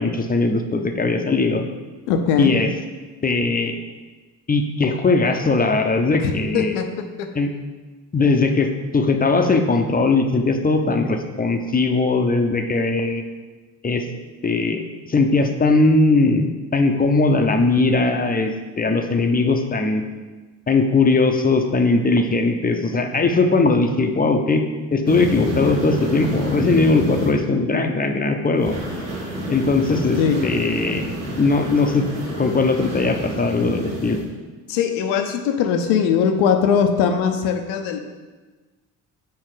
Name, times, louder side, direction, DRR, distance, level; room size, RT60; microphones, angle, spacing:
voice 1, 0.0-1.6 2.4-2.7 3.2-3.7 4.5-6.7 7.4-7.5 8.1-13.2 13.8-14.0 14.4-14.8 15.1-18.5 18.8-20.0 20.7-24.6 24.9-28.7 29.5-31.0 31.4-32.1 32.4-34.2, left 3 dB, 20° left, 5 dB, 0.7 m, -19 dB
voice 2, 2.1-2.5 6.2-7.3 30.2-30.5 34.7-38.0, left 7 dB, 70° left, 6 dB, 0.8 m, -20 dB
sound 1, 25.1-27.3 28.6-34.2, equal, 80° right, 1.4 m, -29 dB
5.7 x 4.4 x 4.9 m, 1.3 s
hypercardioid pair, 50°, 48 cm